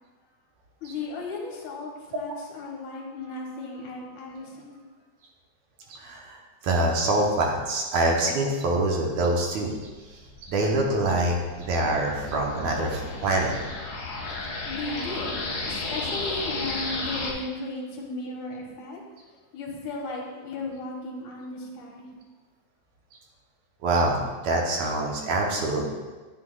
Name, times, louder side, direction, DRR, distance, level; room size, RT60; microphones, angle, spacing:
voice 1, 0.8-4.8 14.6-15.4 15.7-19.0 19.5-22.1, left 2 dB, 70° left, -2 dB, 2.5 m, -35 dB
voice 2, 5.9-9.8 10.1-13.6 14.3-14.4 23.8-25.9, right 2 dB, 70° right, 0 dB, 2.1 m, -25 dB
sound 1, 10.0-17.3, left 3 dB, 45° left, 1.6 m, -34 dB
9.8 x 9.0 x 2.3 m, 1.3 s
omnidirectional pair, 3.6 m